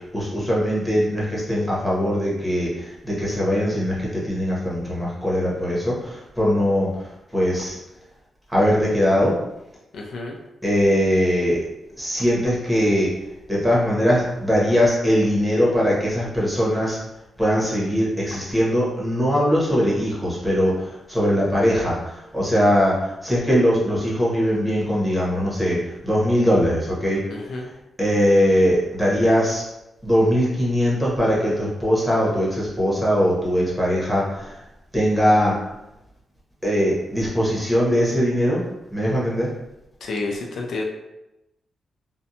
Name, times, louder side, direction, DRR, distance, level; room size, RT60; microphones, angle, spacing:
voice 1, 0.1-7.8 8.5-9.4 10.6-11.6 12.0-13.1 13.5-17.0 17.4-27.2 28.0-29.6 30.0-34.6 34.9-35.5 36.6-38.6 38.9-39.5, equal, ahead, -6 dB, 1.0 m, -21 dB
voice 2, 9.9-10.4 27.3-27.7 40.0-40.8, left 3 dB, 75° left, 1 dB, 0.4 m, -30 dB
2.5 x 2.1 x 2.7 m, 0.92 s
cardioid pair, 85°, 0 cm